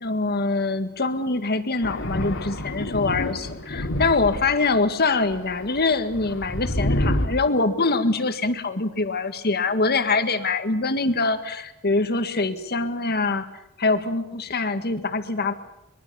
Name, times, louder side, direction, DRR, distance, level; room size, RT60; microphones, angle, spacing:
voice 1, 0.0-13.5 13.8-15.5, left 3 dB, 50° left, 9 dB, 1.9 m, -24 dB
Thunder, 1.8-4.8 5.3-7.3, left 1 dB, 65° left, 2.6 m, -27 dB
24.0 x 22.5 x 7.1 m, 0.84 s
head